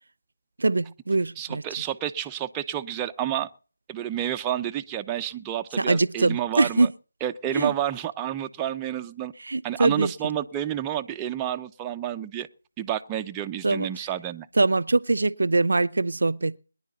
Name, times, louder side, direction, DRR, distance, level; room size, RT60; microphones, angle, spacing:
voice 1, 0.6-1.6 5.8-6.9 7.5-7.7 9.4-10.1 13.6-13.9 14.6-16.6, right 3 dB, 60° right, 0.7 m, -23 dB
voice 2, 1.4-3.5 3.9-6.9 7.2-9.3 9.6-12.5 12.8-14.5, right 11 dB, 10° right, 0.6 m, -30 dB
23.5 x 10.5 x 4.1 m
figure-of-eight pair, 160°, 0 cm